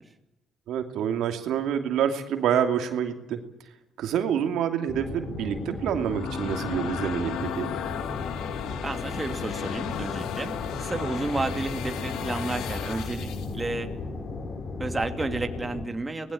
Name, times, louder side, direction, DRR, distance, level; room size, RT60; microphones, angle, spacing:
voice 1, 0.7-3.4 4.0-7.7, right 9 dB, 80° right, 6 dB, 2.7 m, -27 dB
sound 1, 4.9-15.8, left 3 dB, 40° left, 4.0 m, -35 dB
sound 2, 5.8-13.6, left 9 dB, 85° left, 2.2 m, -35 dB
voice 2, 8.8-13.9 14.8-16.3, right 2 dB, 15° right, 6 dB, 2.5 m, -31 dB
26.0 x 20.0 x 8.7 m, 0.92 s
cardioid pair, 110°, 0 cm